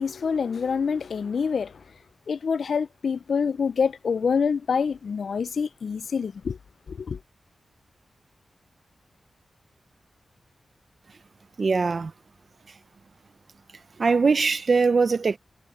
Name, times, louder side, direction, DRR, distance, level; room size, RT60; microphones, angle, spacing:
voice 1, 0.0-1.8 2.3-6.6 6.9-7.2, left 6 dB, 70° left, 0.3 m, -26 dB
voice 2, 11.6-12.1 14.0-15.4, right 4 dB, 55° right, 0.6 m, -21 dB
wide cardioid pair, 85°, 0 cm